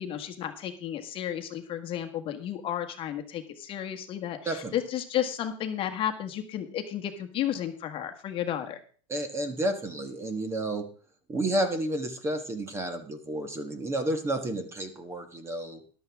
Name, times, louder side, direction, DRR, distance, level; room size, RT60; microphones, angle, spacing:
voice 1, 0.0-8.8, left 10 dB, 30° left, 6 dB, 1.4 m, -33 dB
voice 2, 9.1-10.8 11.3-15.8, right 1 dB, 15° right, 8 dB, 1.4 m, -31 dB
13.5 x 11.5 x 3.5 m, 0.41 s
supercardioid pair, 145°, 17 cm